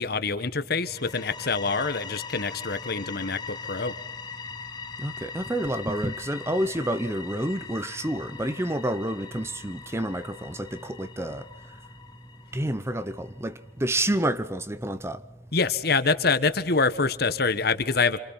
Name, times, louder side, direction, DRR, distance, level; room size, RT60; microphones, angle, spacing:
voice 1, 0.0-3.9 15.5-18.2, left 4 dB, 60° left, 1.5 m, -25 dB
sound 1, 0.8-13.5, left 5 dB, 25° left, 1.2 m, -41 dB
voice 2, 5.0-11.4 12.5-13.5 13.8-15.2, right 1 dB, 15° right, 0.9 m, -29 dB
28.0 x 26.0 x 5.8 m
head